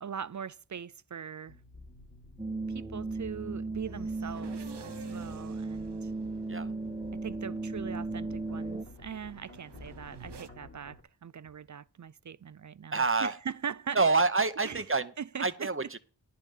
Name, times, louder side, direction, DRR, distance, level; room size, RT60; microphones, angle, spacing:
voice 1, 0.0-1.6 2.7-6.1 7.1-14.1 14.6-14.8 15.2-15.9, right 7 dB, 50° right, 0.4 m, -41 dB
sound 1, 1.5-11.0, left 2 dB, 35° left, 2.6 m, -52 dB
sound 2, 2.4-8.9, right 3 dB, 10° right, 1.2 m, -36 dB
sound 3, 3.8-10.5, right 5 dB, 85° right, 0.8 m, -52 dB
voice 2, 12.9-13.3 13.9-15.1 15.4-16.0, right 3 dB, 30° right, 1.0 m, -27 dB
11.0 x 5.5 x 7.4 m
wide cardioid pair, 40°, 40 cm